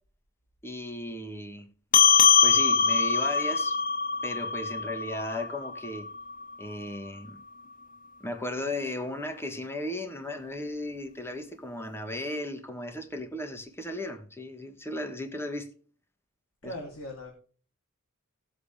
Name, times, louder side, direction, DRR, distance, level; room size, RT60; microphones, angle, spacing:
voice 1, 0.6-1.7 2.4-3.8 4.2-6.1 6.6-7.4 8.2-15.7 16.6-16.7, left 1 dB, 10° left, 1.5 m, -35 dB
sound 1, 1.9-6.7, left 6 dB, 40° left, 0.9 m, -23 dB
voice 2, 16.6-17.3, left 1 dB, 75° left, 3.1 m, -39 dB
18.0 x 7.8 x 3.4 m
head